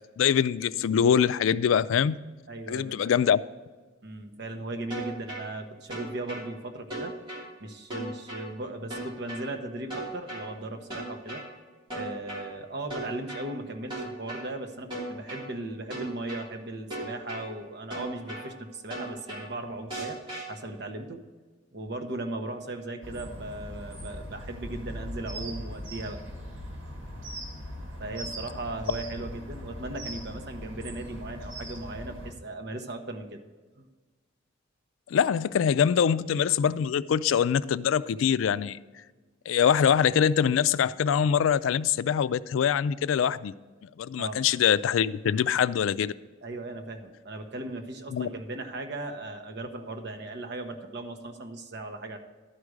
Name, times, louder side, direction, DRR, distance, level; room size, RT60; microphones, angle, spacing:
voice 1, 0.2-2.2 2.7-3.4 35.1-38.8 39.5-43.5 44.0-46.1 48.1-48.3, left 8 dB, 90° left, 0.3 m, -24 dB
voice 2, 2.5-3.1 4.0-7.1 7.6-11.4 11.9-20.2 20.5-21.2 21.7-26.2 28.0-33.4 33.8-33.9 44.2-44.4 46.4-52.2, right 2 dB, 60° right, 1.0 m, -37 dB
sound 1, 4.9-5.4 5.9-6.4 6.9-7.4 7.9-8.4 8.9-9.4 9.9-10.4 10.9-11.4 11.9-12.4 12.9-13.4 13.9-14.4 14.9-15.4 15.9-16.4 16.9-17.4 17.9-18.4 18.9-19.4 19.9-20.4, right 2 dB, 25° right, 3.2 m, -36 dB
sound 2, 23.0-32.3, equal, 85° right, 1.7 m, -40 dB
11.5 x 4.8 x 6.4 m
head